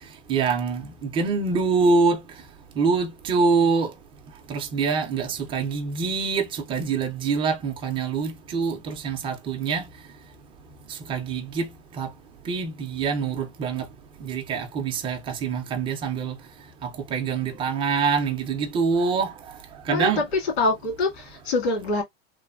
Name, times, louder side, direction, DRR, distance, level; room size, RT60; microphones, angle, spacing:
voice 1, 0.3-2.2 2.8-3.9 4.5-9.8 10.9-11.7 12.0-12.1 12.5-13.8 14.2-16.4 16.8-19.3 19.9-20.2, right 5 dB, 15° right, 0.4 m, -25 dB
voice 2, 20.6-22.0, left 3 dB, 90° left, 1.8 m, -24 dB
3.2 x 2.1 x 2.3 m
supercardioid pair, 150°, 31 cm